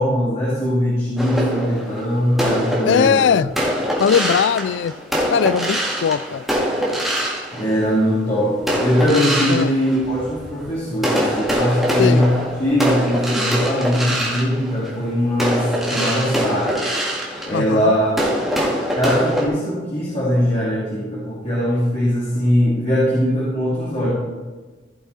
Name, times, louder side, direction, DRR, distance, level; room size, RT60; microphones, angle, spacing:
voice 1, 0.0-3.2 7.5-16.8 17.4-18.4 18.9-24.1, equal, 35° left, -8 dB, 2.5 m, -20 dB
sound 1, 1.2-8.1 8.6-10.6 11.0-19.5, equal, ahead, 1.9 m, -23 dB
voice 2, 2.8-3.5 4.0-4.9 5.3-6.5 9.5-9.7 12.0-12.3 17.5-17.9, left 7 dB, 70° left, 18 dB, 0.3 m, -19 dB
15.0 x 6.0 x 4.1 m, 1.3 s
head